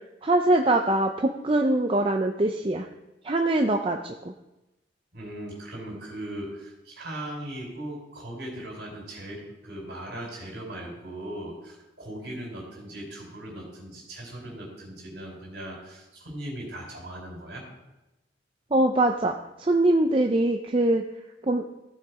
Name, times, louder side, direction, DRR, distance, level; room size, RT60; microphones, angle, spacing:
voice 1, 0.2-2.9 3.2-4.3 18.7-21.0 21.4-21.6, right 1 dB, 30° right, 4 dB, 0.5 m, -23 dB
voice 2, 5.1-17.6, right 1 dB, 55° right, -1 dB, 4.2 m, -38 dB
14.5 x 6.5 x 4.8 m, 0.99 s
head